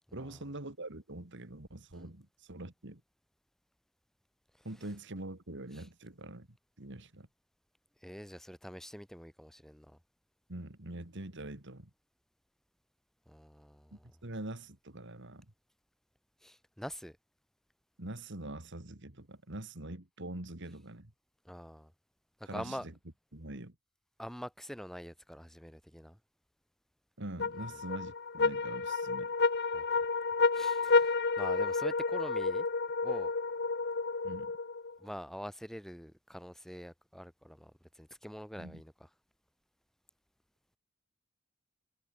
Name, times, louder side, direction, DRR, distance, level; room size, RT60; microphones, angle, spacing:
voice 1, 0.1-3.0 4.6-7.3 10.5-11.9 13.9-15.5 18.0-21.1 22.4-22.9 23.3-23.7 27.2-29.3 34.2-34.5 38.6-38.8, right 1 dB, 55° right, 2.6 m, -44 dB
voice 2, 8.0-10.0 13.3-14.1 16.4-17.2 21.4-21.9 22.4-22.9 24.2-26.2 27.6-27.7 29.7-29.9 30.5-32.7 33.0-33.3 35.0-39.1, equal, ahead, 6.1 m, -45 dB
sound 1, 27.4-34.9, left 4 dB, 50° left, 1.1 m, -30 dB
head